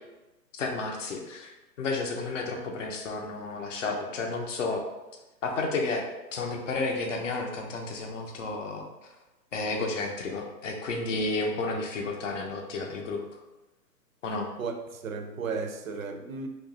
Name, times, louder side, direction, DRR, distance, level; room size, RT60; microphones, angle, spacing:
voice 1, 0.5-4.8 5.4-6.1 6.3-8.9 9.5-13.2 14.2-14.5, left 3 dB, 50° left, 0.6 m, -31 dB
voice 2, 14.6-16.5, right 4 dB, 55° right, 0.5 m, -34 dB
2.9 x 2.4 x 3.6 m
hypercardioid pair, 165°, 50 cm